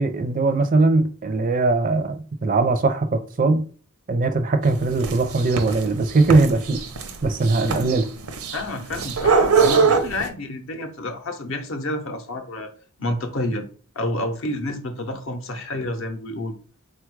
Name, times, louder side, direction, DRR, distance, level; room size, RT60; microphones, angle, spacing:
voice 1, 0.0-3.7 4.1-6.8 7.2-8.1 9.8-10.0, right 3 dB, 35° right, 0.4 m, -20 dB
sound 1, 4.6-10.3, right 5 dB, 80° right, 0.6 m, -22 dB
voice 2, 8.5-12.7 13.0-13.7 13.9-16.6, left 1 dB, 60° left, 0.6 m, -29 dB
4.0 x 2.3 x 4.6 m
head